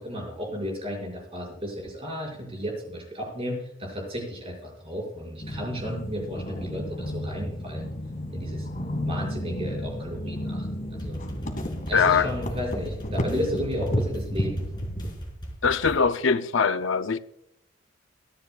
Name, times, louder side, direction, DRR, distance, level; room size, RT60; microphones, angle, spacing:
voice 1, 0.0-7.9 8.3-8.7 9.0-11.2 11.9-14.6, equal, 30° right, 6.2 m, -33 dB
sound 1, 5.4-15.2, equal, 45° left, 2.1 m, -32 dB
sound 2, 11.0-16.0, equal, 25° left, 4.6 m, -38 dB
voice 2, 11.9-12.3 15.6-17.2, left 5 dB, 80° left, 0.6 m, -22 dB
24.5 x 10.5 x 2.4 m
head